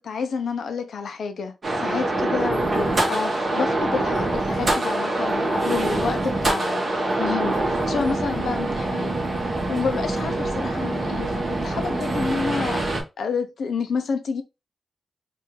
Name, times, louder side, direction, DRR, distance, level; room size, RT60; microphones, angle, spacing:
voice 1, 0.0-9.2 9.5-12.9 13.2-14.4, left 5 dB, 80° left, 0.6 m, -29 dB
sound 1, 1.6-13.0, right 2 dB, 45° right, 1.4 m, -24 dB
4.3 x 2.6 x 3.1 m
wide cardioid pair, 95°, 0 cm